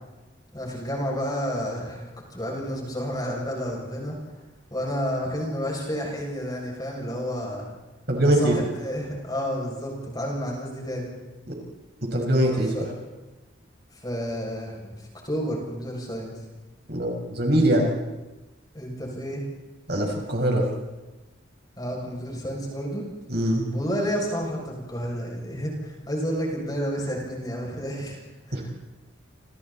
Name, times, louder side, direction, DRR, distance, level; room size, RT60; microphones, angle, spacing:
voice 1, 0.5-4.2 4.7-7.7 8.2-11.1 12.5-12.9 13.9-14.9 15.2-16.3 18.7-19.4 21.8-23.0 23.7-28.2 28.5-28.7, equal, 20° left, -2 dB, 7.5 m, -30 dB
voice 2, 8.1-8.5 12.1-12.8 16.9-17.9 19.9-20.7 23.3-23.6 28.5-28.6, right 1 dB, 55° right, 0 dB, 6.0 m, -22 dB
30.0 x 29.0 x 4.4 m, 1.1 s
head